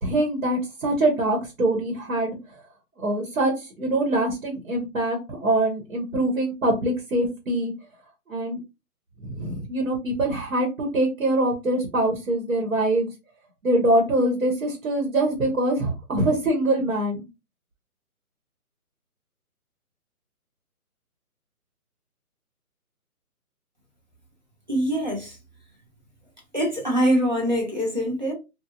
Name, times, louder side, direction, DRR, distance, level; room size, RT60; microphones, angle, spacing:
voice 1, 0.0-2.4 3.0-7.7 8.3-8.6 9.2-13.1 13.6-17.2, right 1 dB, 65° right, 1.2 m, -24 dB
voice 2, 24.7-25.3 26.5-28.3, equal, 30° right, 0.6 m, -23 dB
2.9 x 2.3 x 2.4 m
hypercardioid pair, 175°, 45 cm